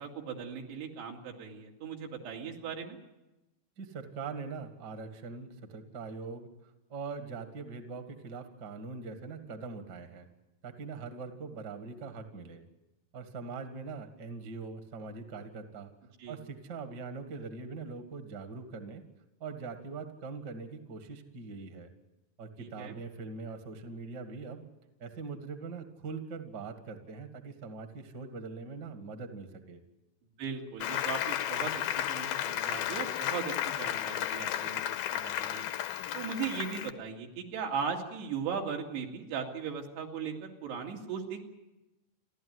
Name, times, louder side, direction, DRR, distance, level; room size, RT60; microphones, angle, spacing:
voice 1, 0.0-3.0 16.2-16.4 22.6-23.0 30.4-35.7 36.1-41.4, right 6 dB, 80° right, 1 dB, 4.4 m, -38 dB
voice 2, 3.8-10.3 10.6-12.6 13.1-15.9 16.3-19.0 19.4-21.9 22.4-24.6 25.0-29.8, right 4 dB, 45° right, 7 dB, 1.5 m, -42 dB
Applause, 30.8-36.9, left 11 dB, 75° left, 2.6 m, -33 dB
30.0 x 12.0 x 9.5 m, 1.0 s
omnidirectional pair, 4.7 m